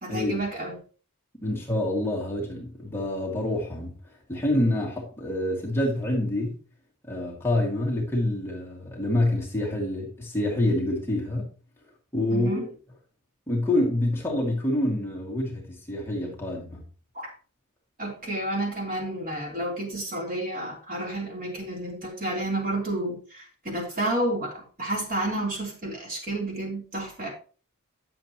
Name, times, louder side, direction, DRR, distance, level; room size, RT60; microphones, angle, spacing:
voice 1, 0.0-0.8 12.3-12.7 17.1-17.3 18.0-27.3, right 1 dB, 40° right, 3.4 m, -30 dB
voice 2, 1.4-3.9 4.3-6.6 7.1-11.5 12.1-12.7 13.5-16.8, left 1 dB, 10° left, 2.2 m, -27 dB
10.5 x 7.5 x 3.0 m
head